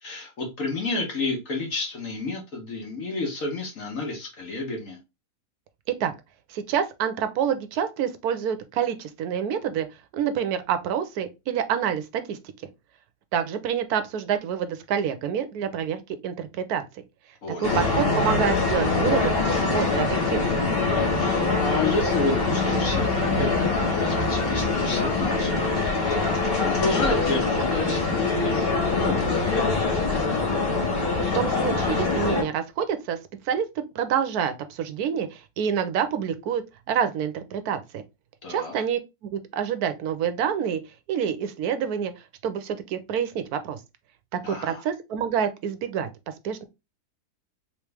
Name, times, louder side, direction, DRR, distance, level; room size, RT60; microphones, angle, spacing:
voice 1, 0.0-5.0 17.4-17.8 21.1-25.9 26.6-29.8 38.4-38.7 44.4-44.8, left 2 dB, 55° left, 1.3 m, -31 dB
voice 2, 6.5-9.9 10.1-12.4 13.3-16.8 17.6-19.3 19.6-20.7 31.3-33.2 33.5-38.0 38.5-40.8 41.1-42.1 42.4-43.8 44.3-46.6, right 8 dB, 70° right, 1.1 m, -27 dB
sound 1, 17.6-32.4, left 3 dB, 35° left, 1.4 m, -24 dB
3.4 x 3.1 x 3.3 m
omnidirectional pair, 1.8 m